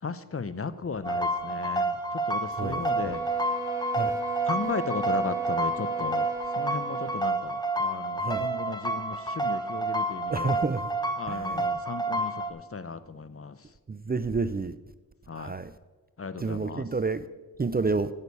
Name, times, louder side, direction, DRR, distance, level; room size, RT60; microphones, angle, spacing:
voice 1, 0.0-3.2 4.5-6.3 6.5-10.6 11.2-13.7 15.3-15.6 16.2-16.9, left 5 dB, 40° left, 14 dB, 0.6 m, -36 dB
sound 1, 1.0-12.5, right 2 dB, 10° left, 1.1 m, -29 dB
sound 2, 2.6-7.3, right 6 dB, 10° right, 1.5 m, -38 dB
voice 2, 10.3-10.8 13.9-14.7 15.4-15.7 16.4-17.2 17.6-18.1, right 4 dB, 25° right, 14 dB, 0.4 m, -28 dB
11.0 x 8.4 x 5.4 m, 1.3 s
cardioid pair, 50°, 36 cm